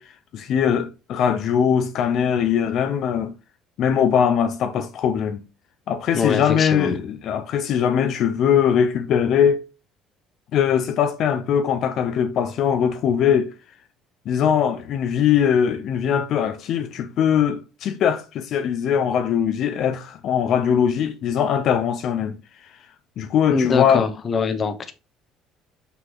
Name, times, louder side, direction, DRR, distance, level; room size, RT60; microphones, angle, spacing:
voice 1, 0.0-3.3 3.8-5.4 5.9-9.6 10.5-13.5 14.3-22.8 23.2-24.1, left 8 dB, 55° left, 0.7 m, -21 dB
voice 2, 6.1-6.9 23.5-24.9, left 5 dB, 30° left, 1.0 m, -23 dB
5.8 x 5.8 x 3.9 m
cardioid pair, 140°, 0 cm